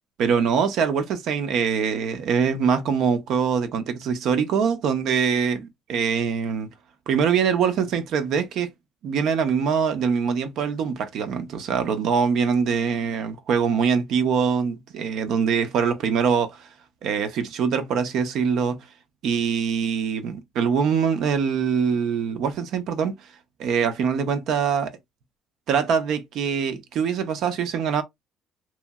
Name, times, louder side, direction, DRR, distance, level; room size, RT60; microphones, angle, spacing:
voice 1, 0.2-6.7 7.1-8.7 9.0-16.7 17.0-18.9 19.2-23.2 23.6-24.9 25.7-28.0, right 6 dB, 65° right, 0.6 m, -23 dB
3.1 x 2.7 x 2.3 m
cardioid pair, 155°, 0 cm